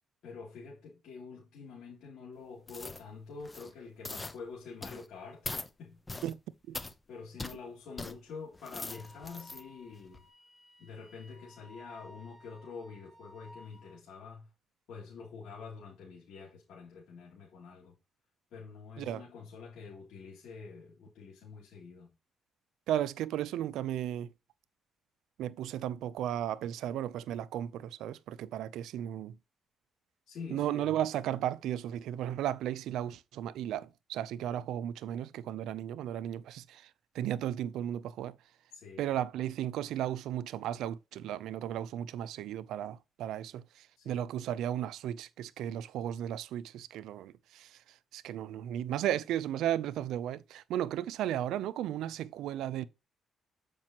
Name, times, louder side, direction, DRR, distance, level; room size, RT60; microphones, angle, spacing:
voice 1, 0.2-6.0 7.1-10.3 10.8-14.5 14.9-17.9 18.5-22.1 30.3-31.0 38.7-39.1 44.0-44.2, left 5 dB, 75° left, 2.7 m, -47 dB
sound 1, 2.7-3.0 3.4-3.7 4.0-4.4 4.8-5.1 5.4-5.7 6.1-6.3 6.7-6.9 7.4-7.6 8.0-8.1 8.5-9.6 10.1-10.2, left 2 dB, 20° left, 0.8 m, -41 dB
Wind instrument woodwind instrument, 8.9-14.0, left 1 dB, 5° right, 4.1 m, -56 dB
voice 2, 22.9-24.3 25.4-29.4 30.5-36.9 37.1-38.4 39.0-47.8 48.1-52.9, right 11 dB, 85° right, 0.4 m, -35 dB
7.4 x 5.2 x 2.9 m
cardioid pair, 90°, 0 cm